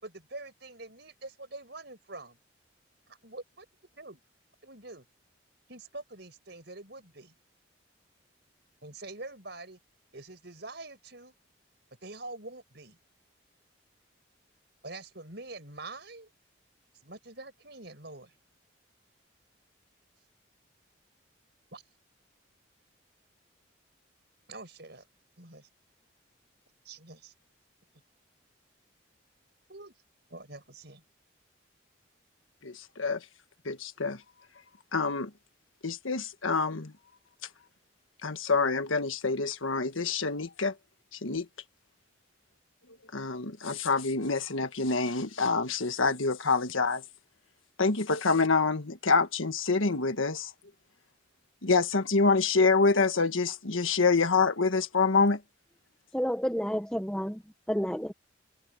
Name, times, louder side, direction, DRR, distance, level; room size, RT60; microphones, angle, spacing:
voice 1, 0.0-2.4 3.1-3.7 4.0-4.2 4.6-5.0 5.7-7.3 8.8-9.8 10.1-11.3 12.0-13.0 14.8-16.3 17.0-18.3 21.7-21.8 24.5-25.0 25.4-25.7 26.8-27.3 29.7-29.9 30.3-31.0, right 2 dB, 55° right, 6.4 m, -45 dB
voice 2, 32.6-33.2 33.6-34.2 34.9-35.3 35.8-36.9 38.2-40.7 41.2-41.4 43.1-47.0 47.8-50.5 51.6-55.4, left 4 dB, 85° left, 1.5 m, -26 dB
voice 3, 56.1-57.4 57.7-58.1, equal, 5° left, 1.3 m, -30 dB
head